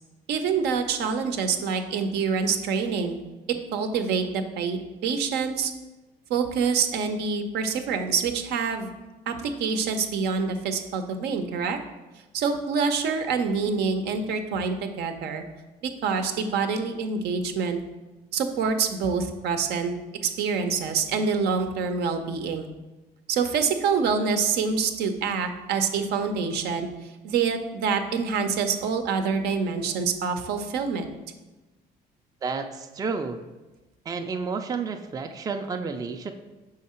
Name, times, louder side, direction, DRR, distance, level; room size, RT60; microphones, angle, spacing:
voice 1, 0.3-3.2 3.7-5.7 6.3-8.9 9.3-11.8 12.3-15.4 15.8-17.8 18.3-19.9 20.2-22.7 23.3-26.9 27.2-31.2, right 5 dB, 75° right, 6 dB, 0.6 m, -26 dB
voice 2, 32.4-33.4 34.1-36.3, right 4 dB, 20° right, 5 dB, 0.4 m, -31 dB
6.4 x 3.7 x 4.3 m, 1.1 s
cardioid pair, 110°, 17 cm